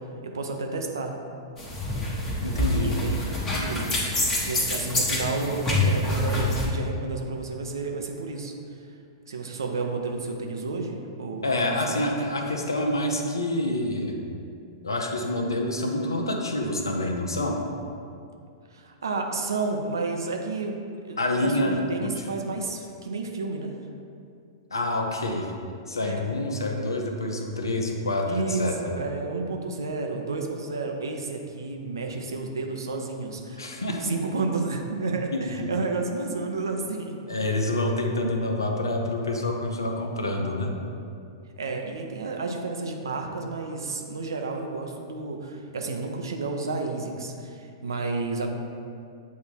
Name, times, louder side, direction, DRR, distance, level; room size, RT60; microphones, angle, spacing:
voice 1, 0.2-1.1 2.8-3.9 4.4-8.5 9.3-11.4 11.9-12.0 18.7-20.7 21.0-23.7 26.0-26.4 28.3-33.7 34.0-37.1 41.6-48.5, right 3 dB, 80° right, 2 dB, 0.7 m, -31 dB
sound 1, 1.6-6.7, left 2 dB, 20° left, 1.2 m, -26 dB
voice 2, 2.4-3.0 11.4-14.2 14.8-17.6 21.2-22.1 24.7-25.5 25.9-29.0 33.6-34.1 35.3-35.7 37.3-40.7, left 1 dB, 85° left, 2 dB, 0.8 m, -27 dB
8.2 x 2.8 x 4.5 m, 2.4 s
hypercardioid pair, 105°, 2 cm